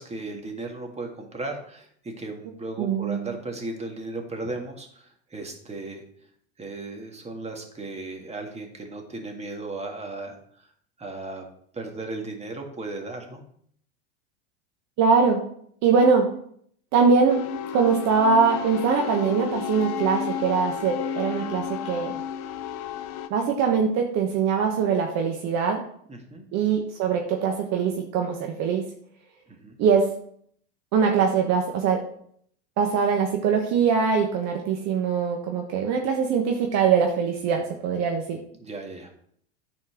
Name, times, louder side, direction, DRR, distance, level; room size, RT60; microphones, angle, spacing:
voice 1, 0.0-6.0 6.6-10.4 11.0-11.4 11.7-13.4 26.1-26.4 29.5-29.8 38.6-39.1, right 2 dB, 20° right, 3 dB, 2.0 m, -36 dB
voice 2, 2.8-3.2 15.0-15.4 15.8-16.3 16.9-17.5 17.7-22.2 23.3-25.8 26.5-28.9 29.8-30.1 30.9-32.0 32.8-38.4, right 5 dB, 50° right, 2 dB, 1.4 m, -22 dB
sound 1, 17.3-23.3, left 9 dB, 60° left, 0.9 m, -32 dB
9.8 x 4.5 x 6.0 m, 0.64 s
hypercardioid pair, 100°, 34 cm